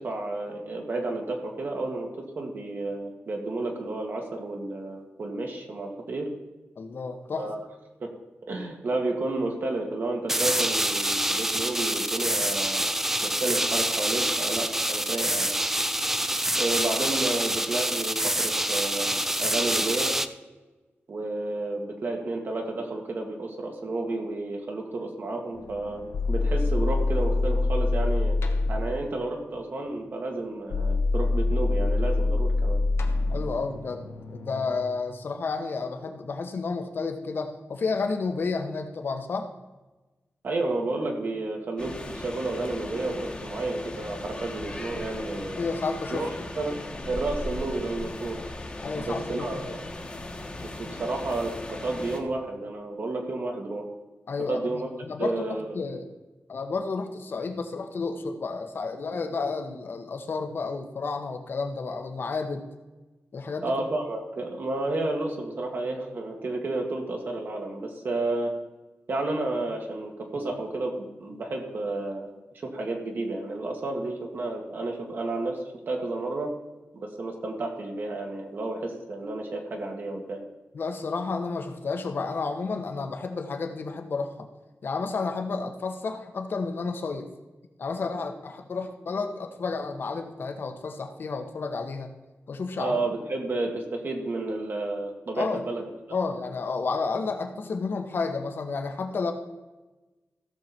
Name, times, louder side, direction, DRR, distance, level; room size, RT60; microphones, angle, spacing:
voice 1, 0.0-2.1 2.4-6.3 7.4-7.6 8.0-8.1 8.5-12.9 13.2-15.5 16.6-20.1 21.1-26.0 26.3-28.4 28.7-32.8 40.4-45.6 46.1-46.3 46.6-46.8 47.1-48.4 49.0-49.8 50.6-53.8 54.5-54.9 55.2-55.8 63.6-68.5 69.1-70.9 71.2-72.3 72.7-76.5 76.9-80.4 92.8-95.8, right 2 dB, 55° right, 1 dB, 2.0 m, -31 dB
voice 2, 6.8-7.5 33.3-34.0 34.3-39.5 45.6-46.5 48.8-49.8 54.3-56.1 56.5-62.7 63.3-63.8 80.7-84.5 84.8-87.3 87.8-92.1 92.5-93.0 95.4-95.7 96.1-99.3, left 4 dB, 55° left, 6 dB, 1.2 m, -31 dB
sound 1, 10.3-20.3, right 1 dB, 10° right, 0.5 m, -26 dB
sound 2, 25.6-29.0 30.7-34.8, left 3 dB, 90° left, 1.2 m, -25 dB
sound 3, 41.8-52.2, left 1 dB, 25° left, 1.3 m, -38 dB
16.0 x 6.8 x 4.5 m, 1.2 s
wide cardioid pair, 160°, 4 cm